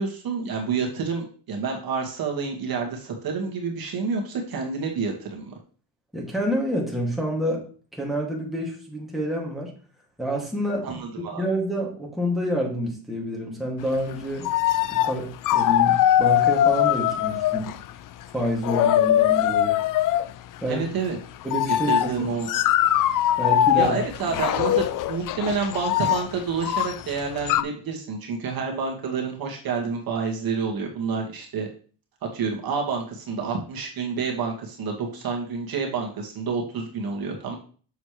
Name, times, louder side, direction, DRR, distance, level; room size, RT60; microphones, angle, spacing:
voice 1, 0.0-5.5 10.8-11.4 20.7-21.2 21.8-22.5 23.8-31.7 32.3-37.6, right 5 dB, 50° right, 0 dB, 1.9 m, -29 dB
voice 2, 6.1-9.7 10.2-11.0 11.3-14.5 14.9-17.7 18.3-19.8 20.6-20.9 21.4-22.3 23.4-24.0, equal, ahead, -2 dB, 2.3 m, -28 dB
sound 1, 14.1-14.2 14.4-15.2 15.4-17.9 18.4-20.3 21.4-27.6, left 12 dB, 45° left, 0.5 m, -21 dB
7.0 x 6.5 x 3.2 m, 0.41 s
cardioid pair, 120°, 45 cm